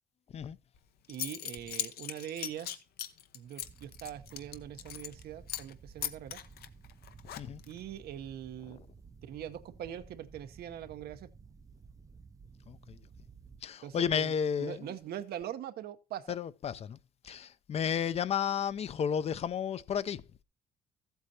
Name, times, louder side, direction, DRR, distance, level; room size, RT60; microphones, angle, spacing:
Zipper (clothing) / Coin (dropping), 0.7-0.8 1.1-5.2 5.5-5.7 6.0-7.8, left 11 dB, 85° left, 0.9 m, -39 dB
voice 1, 1.1-2.8 3.3-6.4 7.7-8.8 9.2-11.3 13.8-14.3 14.6-16.4, right 10 dB, 90° right, 0.9 m, -42 dB
sound 1, 3.6-13.6, right 5 dB, 20° right, 0.5 m, -54 dB
voice 2, 12.7-13.1 13.6-15.0 16.3-17.0 17.2-20.4, left 8 dB, 40° left, 0.5 m, -33 dB
14.5 x 8.1 x 2.8 m
cardioid pair, 160°, 16 cm